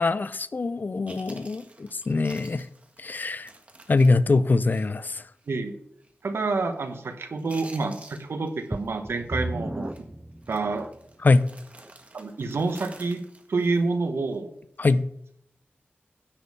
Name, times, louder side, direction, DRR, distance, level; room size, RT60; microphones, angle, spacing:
voice 1, 0.0-2.7 3.0-3.5 3.9-5.2 11.2-11.5 14.8-15.1, left 3 dB, 45° left, 0.5 m, -23 dB
Chewing mastication, 0.7-0.8 1.1-5.1 5.4-5.5 6.0-6.3 6.6-7.1 7.3-8.9 9.1-9.4 9.8-10.0 10.4-14.4 14.8-15.0, right 2 dB, 35° right, 1.6 m, -50 dB
voice 2, 6.2-9.9 10.5-10.9 12.1-13.2 13.5-14.5, right 3 dB, 80° right, 1.2 m, -28 dB
sound 1, 8.7-11.1 11.8-11.9 12.5-12.6, right 1 dB, 5° right, 0.5 m, -34 dB
10.0 x 5.2 x 6.7 m
wide cardioid pair, 75°, 4 cm